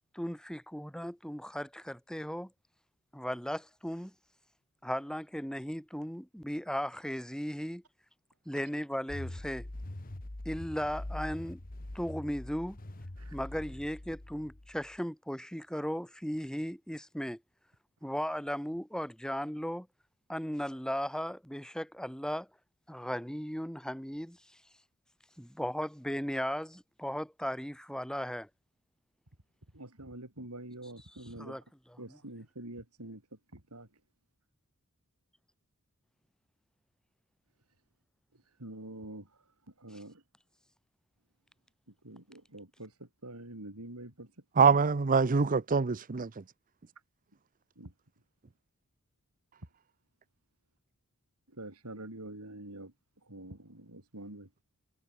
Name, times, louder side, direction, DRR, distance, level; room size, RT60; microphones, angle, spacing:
voice 1, 0.1-2.5 3.1-4.1 4.8-7.8 8.5-9.7 10.5-11.6 11.9-12.8 13.3-17.4 18.0-19.9 20.3-22.5 22.9-24.4 25.4-28.5 31.4-31.6 31.9-32.2, equal, 5° left, 5.4 m, -36 dB
sound 1, 9.1-15.0, left 1 dB, 40° left, 1.4 m, -43 dB
voice 2, 29.7-31.6 32.0-33.2 33.7-33.9 38.6-39.3 39.8-40.2 42.0-44.3 47.8-47.9 51.5-52.9 53.3-54.5, right 1 dB, 80° right, 4.6 m, -46 dB
voice 3, 44.6-46.3, right 5 dB, 40° right, 0.6 m, -24 dB
head